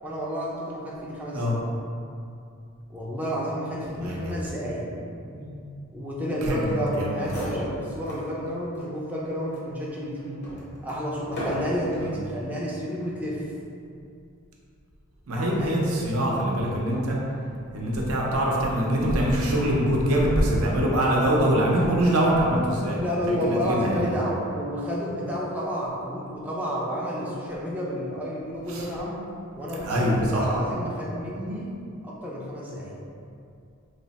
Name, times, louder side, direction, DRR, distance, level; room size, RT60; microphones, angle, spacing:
voice 1, 0.0-1.5 2.9-4.9 5.9-10.4 10.8-13.4 15.3-15.8 16.9-17.1 22.9-29.2 29.5-31.7 32.0-32.9, equal, 5° right, -6 dB, 0.5 m, -30 dB
voice 2, 4.0-4.4 5.3-5.5 6.4-7.4 11.9-12.1 15.3-17.2 17.7-23.0 23.3-24.1 28.7-28.8 29.8-30.5, right 1 dB, 70° right, -3 dB, 0.6 m, -24 dB
sound 1, 7.2-8.3 8.7-8.9 9.5-12.1 12.9-13.2, equal, 50° left, 0.9 m, -36 dB
3.1 x 2.1 x 4.0 m, 2.5 s
head